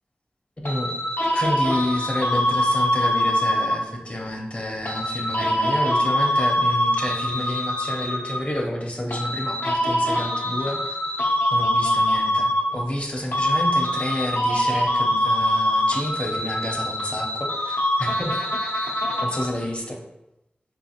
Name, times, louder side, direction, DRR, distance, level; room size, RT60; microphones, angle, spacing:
sound 1, 0.6-4.0 4.8-8.6 9.1-13.0 13.3-19.6, left 1 dB, 80° left, 0.6 m, -23 dB
voice 1, 0.6-0.9 1.3-10.8 11.5-18.9 19.2-20.0, left 1 dB, 35° left, 1 dB, 0.7 m, -29 dB
3.8 x 2.5 x 2.9 m, 0.85 s
wide cardioid pair, 50°, 4 cm